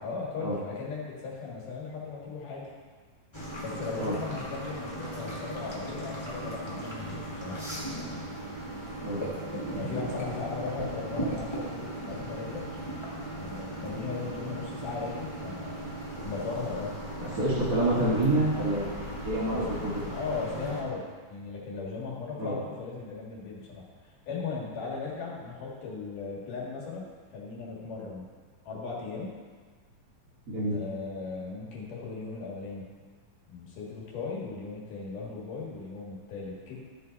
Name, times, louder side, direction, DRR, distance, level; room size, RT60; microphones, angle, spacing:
voice 1, 0.0-2.7 3.6-7.6 9.7-12.6 13.4-15.8 16.2-16.9 19.5-21.0 21.3-27.0 27.3-28.3 28.6-29.3 30.7-32.8 33.5-36.8, left 4 dB, 70° left, -4 dB, 3.4 m, -37 dB
sound 1, 3.3-20.8, right 1 dB, 15° left, 1.1 m, -37 dB
voice 2, 17.3-18.9 19.2-19.9 22.4-22.6 30.5-30.8, right 1 dB, 40° right, -8 dB, 1.4 m, -27 dB
14.0 x 5.4 x 4.0 m, 1.5 s
omnidirectional pair, 3.8 m